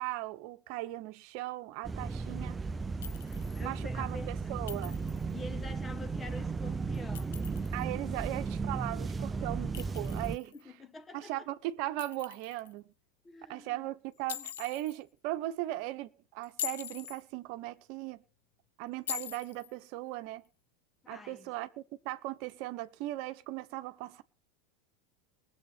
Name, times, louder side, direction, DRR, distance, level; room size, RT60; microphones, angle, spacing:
voice 1, 0.0-2.5 3.6-5.0 7.7-10.5 11.1-12.9 13.5-18.2 18.8-20.4 21.1-24.2, right 16 dB, 60° right, 1.0 m, -38 dB
sound 1, 1.8-10.4, right 4 dB, 20° right, 0.6 m, -35 dB
Chink clink, 3.0-3.6 4.7-5.3 6.9-7.8 9.7-10.6 12.0-12.7 14.3-15.0 16.4-17.2 19.1-19.7, left 11 dB, 80° left, 0.8 m, -42 dB
voice 2, 3.5-4.6 5.3-7.5 10.5-11.5 13.2-13.9 14.3-14.5 21.0-21.5, left 3 dB, 20° left, 1.3 m, -47 dB
20.0 x 7.4 x 6.0 m
hypercardioid pair, 90°, 0 cm